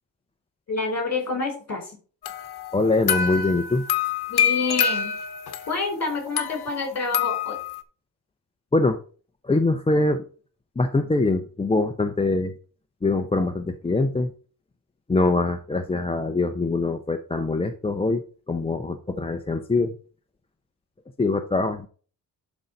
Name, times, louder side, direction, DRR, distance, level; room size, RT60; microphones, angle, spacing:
voice 1, 0.7-1.9 4.3-5.2 5.7-7.6, left 3 dB, 40° left, 3 dB, 4.3 m, -28 dB
sound 1, 2.2-5.8 6.4-7.8, left 8 dB, 65° left, 1.1 m, -26 dB
voice 2, 2.7-3.8 8.7-9.0 9.4-10.2 10.8-12.5 13.0-14.3 15.1-20.0 21.2-21.9, left 2 dB, 15° left, 5 dB, 0.5 m, -23 dB
11.5 x 3.9 x 5.3 m, 0.39 s
wide cardioid pair, 175°, 40 cm